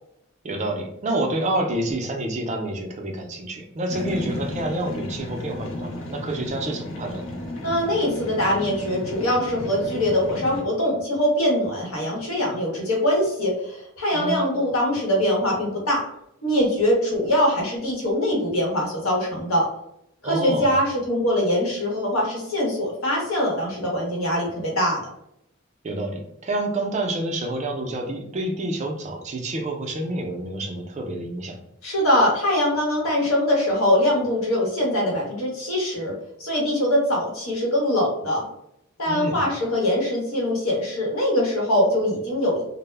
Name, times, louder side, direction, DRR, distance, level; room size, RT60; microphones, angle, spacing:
voice 1, 0.4-7.3 14.1-14.4 20.2-20.7 25.8-31.6 39.1-39.4, right 1 dB, 35° right, 2 dB, 0.4 m, -28 dB
sound 1, 3.9-10.6, left 1 dB, 70° left, 0.5 m, -34 dB
voice 2, 7.6-16.1 16.4-19.7 20.2-25.0 31.8-36.1 36.4-38.4 39.0-42.6, left 1 dB, 85° left, -2 dB, 0.9 m, -22 dB
2.0 x 2.0 x 3.2 m, 0.78 s
head